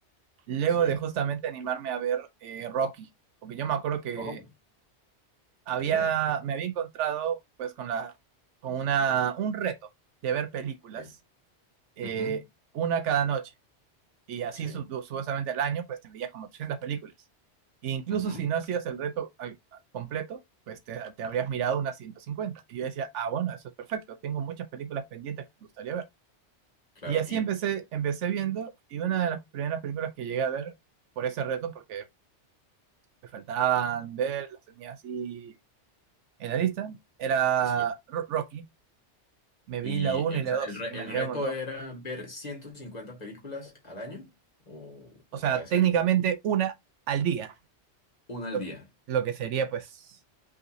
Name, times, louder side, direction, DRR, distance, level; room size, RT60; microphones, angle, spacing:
voice 1, 0.5-3.1 3.4-4.4 5.7-8.1 8.6-9.8 10.2-11.0 12.0-12.4 12.8-13.5 14.3-17.1 17.8-19.5 19.9-20.4 20.7-23.6 23.9-25.4 25.8-26.0 27.1-30.7 31.2-32.0 33.3-35.5 36.4-38.6 39.7-40.7 40.9-41.5 45.3-46.7 47.1-47.5 48.5-48.6 49.1-50.1, right 8 dB, 80° right, 1.0 m, -29 dB
voice 2, 4.2-4.5 5.8-6.1 11.0-11.1 12.0-12.4 14.5-14.9 18.1-18.5 27.0-27.5 37.6-37.8 39.8-44.3 44.7-45.9 48.3-48.8, left 2 dB, 35° left, 2.1 m, -38 dB
5.3 x 3.8 x 2.6 m
omnidirectional pair, 1.2 m